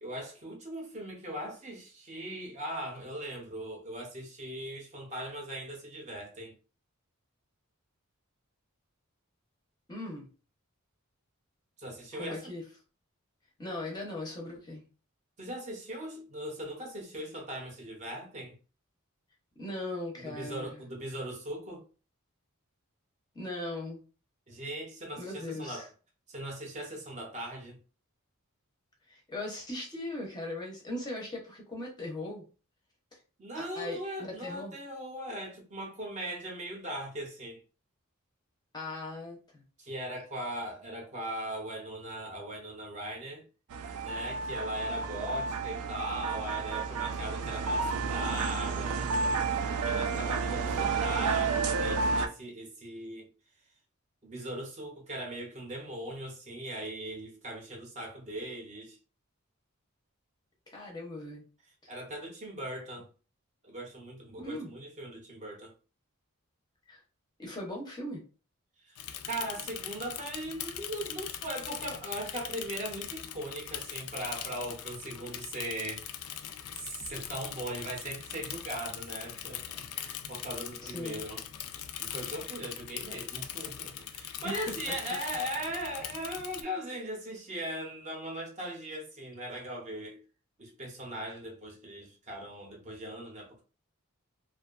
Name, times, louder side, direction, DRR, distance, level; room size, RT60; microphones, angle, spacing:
voice 1, 0.0-6.6 11.8-12.5 15.4-18.6 20.1-21.8 24.5-25.9 26.3-27.8 33.4-37.6 39.8-43.4 44.0-49.1 49.6-53.3 54.2-59.0 61.9-63.1 63.6-65.7 68.8-69.0 69.2-76.2 76.8-81.4 82.0-90.2 90.6-93.6, right 1 dB, 30° right, 0.6 m, -39 dB
voice 2, 9.9-10.3 12.2-12.6 13.6-14.8 19.6-20.8 23.3-24.0 25.2-25.9 29.1-32.4 33.5-34.7 38.7-39.6 60.7-61.4 61.8-61.9 64.4-64.7 66.9-67.0 67.4-68.2 80.8-81.2 84.4-84.7, left 1 dB, 20° left, 0.5 m, -39 dB
sound 1, 43.7-52.3, right 4 dB, 80° right, 0.4 m, -31 dB
Bicycle / Mechanisms, 68.9-86.6, left 10 dB, 80° left, 0.3 m, -41 dB
2.5 x 2.2 x 2.3 m
head